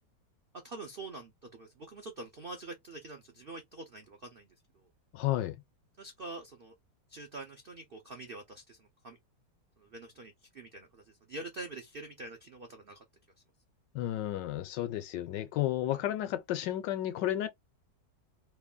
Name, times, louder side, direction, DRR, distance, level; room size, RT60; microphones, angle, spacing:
voice 1, 0.6-4.5 4.7-4.9 6.0-6.7 7.1-9.2 9.8-13.0, right 2 dB, 70° right, 0.5 m, -45 dB
voice 2, 5.1-5.6 13.9-17.5, left 13 dB, 75° left, 1.2 m, -32 dB
3.2 x 2.4 x 3.6 m
omnidirectional pair, 2.0 m